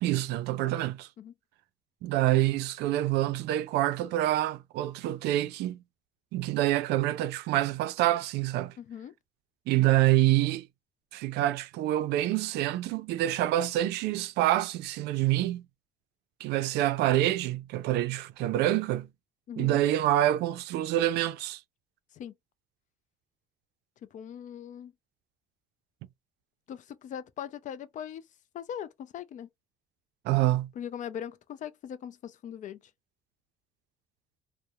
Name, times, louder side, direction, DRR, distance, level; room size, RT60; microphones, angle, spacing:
voice 1, 0.0-1.1 2.0-5.8 6.3-8.7 9.7-10.7 11.1-15.6 16.4-19.1 19.6-21.6 30.2-30.7, right 14 dB, 80° right, 0.4 m, -26 dB
voice 2, 8.8-9.1 19.5-19.8 22.2-22.3 24.1-24.9 26.7-28.2 28.5-29.5 30.8-32.8, left 9 dB, 50° left, 0.4 m, -40 dB
2.8 x 2.0 x 2.3 m
cardioid pair, 110°, 17 cm